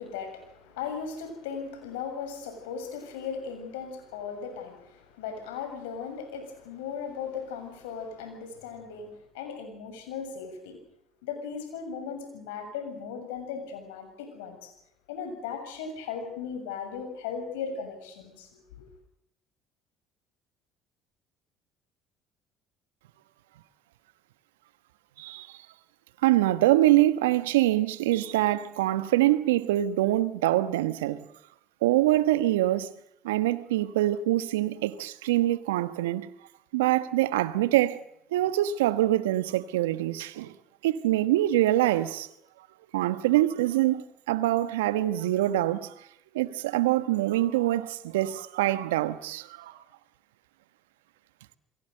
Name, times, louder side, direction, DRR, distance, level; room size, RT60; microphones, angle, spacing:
voice 1, 0.0-10.8 11.2-14.7 15.1-18.5 18.8-18.9, left 6 dB, 75° left, 7.2 m, -37 dB
voice 2, 25.2-25.7 26.2-31.2 31.8-32.9 33.2-36.3 36.7-38.0 38.3-40.6 40.8-42.3 42.9-46.1 46.3-49.8, right 15 dB, 80° right, 1.2 m, -25 dB
29.0 x 21.5 x 6.7 m
hypercardioid pair, 60°, 0 cm